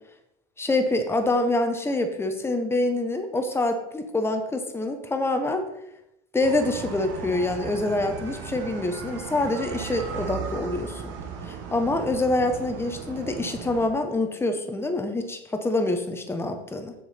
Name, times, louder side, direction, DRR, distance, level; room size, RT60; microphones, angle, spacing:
voice 1, 0.6-5.6 6.3-11.1 11.4-16.9, left 2 dB, 10° left, 6 dB, 1.1 m, -26 dB
sound 1, 6.4-13.9, right 6 dB, 65° right, 1.8 m, -36 dB
7.2 x 7.0 x 4.4 m, 0.85 s
supercardioid pair, 120°, 21 cm